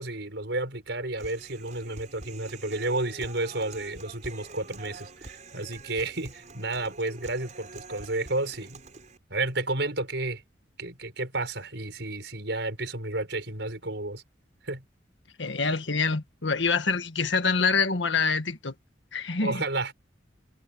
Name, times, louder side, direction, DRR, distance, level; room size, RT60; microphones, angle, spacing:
voice 1, 0.0-8.8 9.3-10.4 10.8-14.2 14.6-14.8 19.4-19.9, right 2 dB, 65° right, 6.5 m, -31 dB
Human voice, 1.2-9.2, right 3 dB, 40° right, 5.8 m, -46 dB
voice 2, 15.4-18.7 19.1-19.6, left 4 dB, 75° left, 1.7 m, -26 dB
head